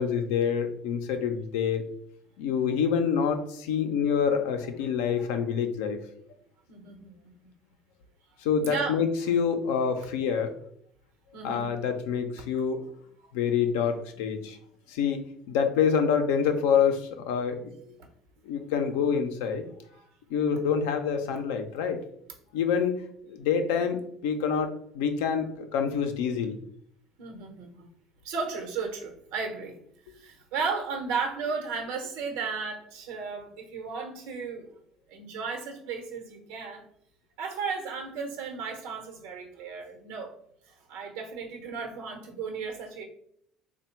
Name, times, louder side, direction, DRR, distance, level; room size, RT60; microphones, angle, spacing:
voice 1, 0.0-1.9 2.4-6.0 8.4-10.5 11.4-12.9 13.3-14.6 14.9-17.7 18.5-19.6 20.3-22.0 22.5-23.0 23.3-26.6, left 7 dB, 90° left, 7 dB, 0.5 m, -27 dB
voice 2, 6.7-7.5 8.6-9.0 11.3-11.7 19.9-20.0 27.2-27.9 28.2-29.8 30.1-34.7 35.1-36.9 37.4-40.3 40.9-43.0, right 5 dB, 85° right, 4 dB, 0.9 m, -34 dB
3.4 x 2.2 x 4.3 m, 0.70 s
supercardioid pair, 100°, 0 cm